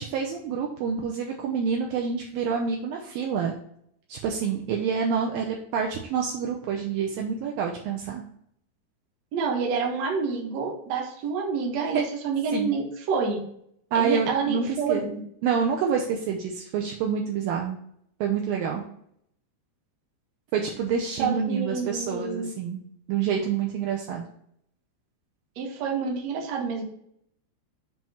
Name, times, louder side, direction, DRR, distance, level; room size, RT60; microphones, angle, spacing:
voice 1, 0.0-3.5 4.1-8.2 12.5-12.7 13.9-15.0 15.4-17.8 18.2-18.8 20.5-22.8 23.1-24.2, right 6 dB, 85° right, 0 dB, 2.1 m, -27 dB
voice 2, 9.3-13.4 13.9-15.2 21.2-22.5 25.6-26.8, right 5 dB, 65° right, 0 dB, 1.7 m, -28 dB
7.5 x 3.0 x 5.6 m, 0.69 s
omnidirectional pair, 4.9 m